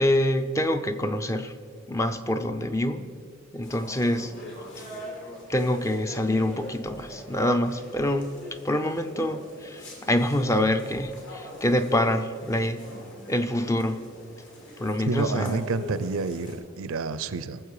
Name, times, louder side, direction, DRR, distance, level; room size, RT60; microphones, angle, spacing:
voice 1, 0.0-1.5 1.9-3.1 3.5-4.3 5.5-8.3 8.6-14.0 14.8-15.7, left 1 dB, 15° left, 8 dB, 0.5 m, -26 dB
sound 1, 3.6-16.5, equal, 60° left, 2.8 m, -42 dB
voice 2, 15.0-17.6, right 4 dB, 85° right, 14 dB, 0.5 m, -29 dB
19.0 x 7.4 x 4.9 m, 2.2 s
head